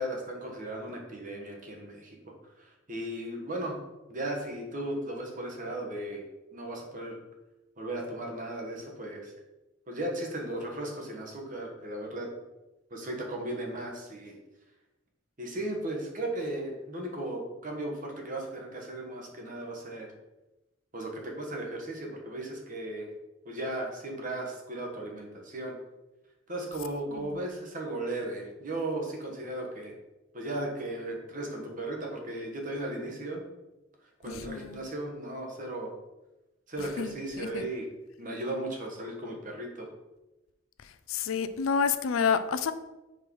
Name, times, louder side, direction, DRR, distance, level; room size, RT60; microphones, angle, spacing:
voice 1, 0.0-2.2 2.6-3.8 4.1-6.2 6.5-7.2 7.8-9.3 9.9-12.3 12.9-14.3 15.4-20.1 20.9-23.1 23.4-25.7 26.5-29.9 30.3-33.5 34.2-35.9 36.7-37.9 38.2-39.9, right 1 dB, 40° right, 1 dB, 1.2 m, -36 dB
voice 2, 34.3-34.9 37.0-37.7 41.1-42.7, left 6 dB, 80° left, 11 dB, 0.5 m, -29 dB
5.4 x 4.6 x 4.6 m, 1.0 s
head